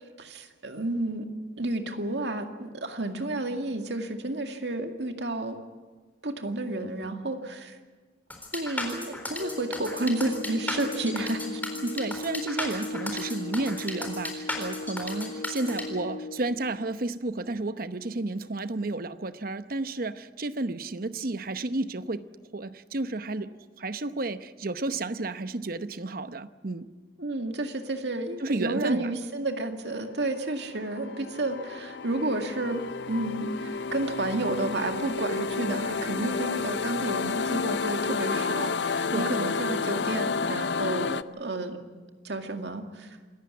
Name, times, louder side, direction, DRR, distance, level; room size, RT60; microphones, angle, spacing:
voice 1, 0.2-1.3 1.6-5.6 6.2-7.8 8.5-11.6 27.2-41.8 42.2-43.2, right 2 dB, 75° right, 6 dB, 2.2 m, -31 dB
sound 1, 8.3-15.8, left 2 dB, 10° left, 4.1 m, -35 dB
sound 2, 9.4-16.4, left 3 dB, 30° left, 2.4 m, -38 dB
voice 2, 11.8-26.9 28.4-29.1 39.1-39.4, right 2 dB, 55° right, 12 dB, 0.9 m, -32 dB
sound 3, 30.5-41.2, left 5 dB, 75° left, 0.6 m, -31 dB
27.0 x 14.5 x 9.6 m, 1.3 s
head